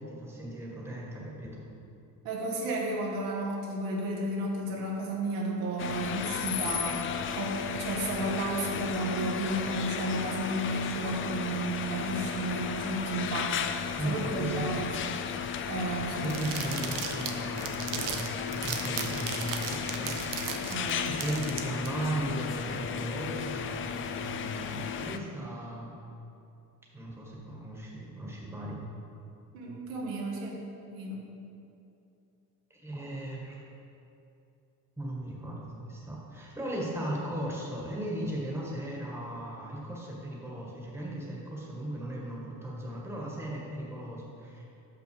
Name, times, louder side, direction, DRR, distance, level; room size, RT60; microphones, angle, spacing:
voice 1, 0.0-1.6 14.0-14.5 16.2-20.2 21.1-25.9 26.9-28.8 32.7-33.7 35.0-44.7, right 1 dB, 5° right, -4 dB, 1.5 m, -37 dB
voice 2, 2.2-14.9 15.7-16.4 20.7-21.1 29.5-30.6 30.9-31.2, right 2 dB, 85° right, -2 dB, 1.5 m, -33 dB
sound 1, 5.8-25.2, left 7 dB, 35° left, 0.4 m, -34 dB
sound 2, 16.2-21.9, right 7 dB, 65° right, 0.8 m, -37 dB
6.2 x 5.9 x 4.7 m, 2.7 s
cardioid pair, 115°, 35 cm